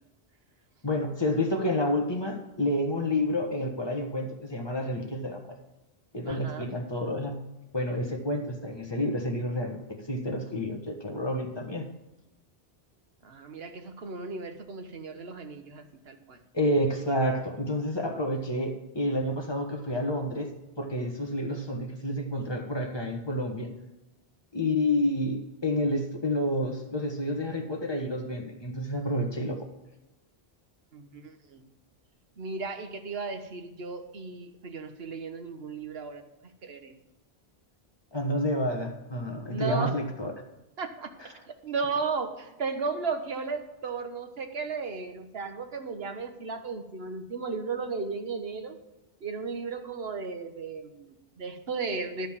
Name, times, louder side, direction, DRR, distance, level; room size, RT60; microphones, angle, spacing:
voice 1, 0.8-5.6 6.1-7.3 7.7-11.9 16.5-20.5 20.8-23.7 24.5-29.7 38.1-40.3 41.2-41.3, left 1 dB, 25° left, 2 dB, 1.5 m, -29 dB
voice 2, 6.2-6.7 13.2-16.4 30.9-31.6 32.4-36.2 36.6-36.9 39.5-39.9 40.8-41.1 41.6-48.8 49.2-52.3, right 4 dB, 75° right, 7 dB, 1.3 m, -35 dB
11.5 x 5.4 x 7.4 m, 1.0 s
omnidirectional pair, 1.0 m